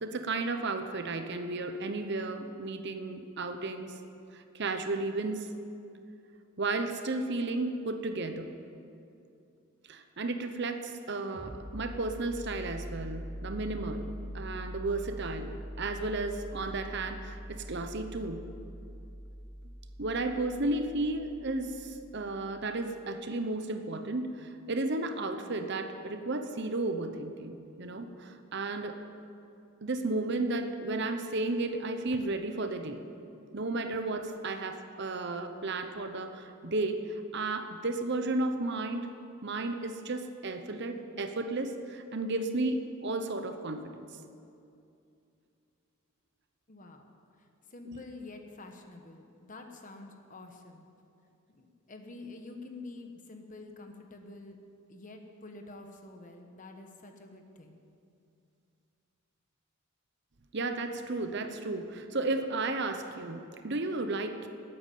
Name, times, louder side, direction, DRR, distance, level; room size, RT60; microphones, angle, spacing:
voice 1, 0.0-3.9 4.3-5.5 6.6-8.5 9.9-18.4 20.0-29.0 29.8-33.0 33.5-39.0 39.4-44.1 47.9-48.0 60.5-64.5, right 2 dB, 50° right, 7 dB, 0.9 m, -33 dB
sound 1, 11.3-22.7, equal, 10° left, 4.2 m, -43 dB
voice 2, 46.7-47.1 47.7-50.9 51.5-54.6 54.9-57.8, left 2 dB, 35° left, 4 dB, 1.2 m, -48 dB
13.0 x 8.9 x 9.2 m, 2.6 s
head